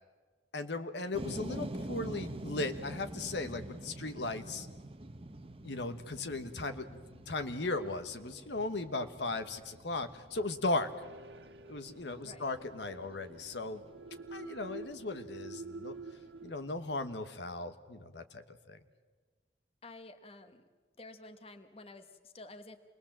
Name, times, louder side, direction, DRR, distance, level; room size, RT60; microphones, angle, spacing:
voice 1, 0.5-4.7 5.6-7.0 7.3-10.9 11.7-13.8 14.3-16.0 16.4-18.4 18.7-18.8, left 2 dB, 80° left, 8 dB, 1.4 m, -37 dB
sound 1, 1.1-17.1, right 1 dB, 30° right, 0.9 m, -47 dB
sound 2, 11.0-16.5, right 3 dB, 90° right, 1.1 m, -48 dB
voice 2, 12.2-12.5 19.8-20.6 21.0-22.8, left 2 dB, 35° left, 9 dB, 1.3 m, -51 dB
27.5 x 21.0 x 7.4 m, 1.4 s
head